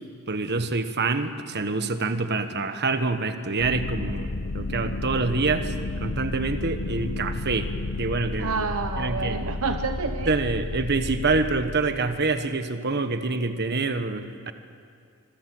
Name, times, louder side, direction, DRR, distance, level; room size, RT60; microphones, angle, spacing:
voice 1, 0.3-5.7 6.0-7.7 8.0-8.7 9.0-9.4 10.3-14.5, right 3 dB, 50° right, 9 dB, 1.4 m, -26 dB
sound 1, 3.6-12.3, left 2 dB, 65° left, 1.0 m, -32 dB
voice 2, 8.4-10.3, right 4 dB, 70° right, 7 dB, 1.0 m, -28 dB
26.5 x 22.5 x 7.9 m, 2.3 s
head